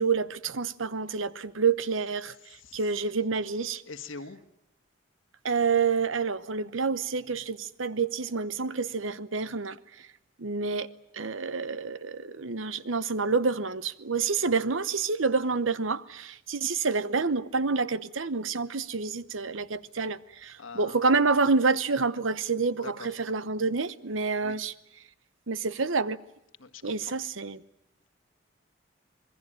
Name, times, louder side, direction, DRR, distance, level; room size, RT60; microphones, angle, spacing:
voice 1, 0.0-2.3 2.7-3.8 5.4-9.8 10.4-24.7 25.5-26.2 26.8-27.6, right 4 dB, 85° right, 1.0 m, -28 dB
voice 2, 2.4-2.9 3.9-4.4 20.0-20.1 20.6-21.1 22.8-23.2 24.4-24.6 26.6-27.1, left 4 dB, 85° left, 1.7 m, -44 dB
26.5 x 21.0 x 8.9 m
head